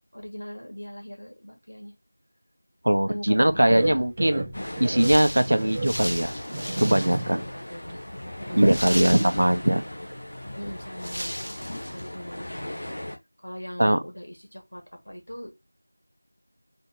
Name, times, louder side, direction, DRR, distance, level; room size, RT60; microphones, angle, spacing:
voice 1, 0.1-1.9 3.1-4.0 7.0-8.0 8.4-8.6 10.6-11.5 11.9-13.0 13.4-15.5, equal, 70° left, 2.3 m, -40 dB
voice 2, 2.8-4.4 4.8-6.3 6.8-7.4 8.5-9.8 13.8-14.0, right 1 dB, 55° right, 0.8 m, -21 dB
sound 1, 3.4-7.5 7.9-8.0 8.5-9.2 9.6-9.7 10.1-10.2, right 2 dB, 15° right, 0.5 m, -33 dB
sound 2, 4.5-13.2, left 1 dB, 50° left, 1.3 m, -38 dB
sound 3, 4.6-7.4 7.7-7.8 8.6-9.8 10.6-10.7 11.0-12.1, equal, 85° left, 1.2 m, -35 dB
4.2 x 3.3 x 3.0 m
figure-of-eight pair, 175°, 0 cm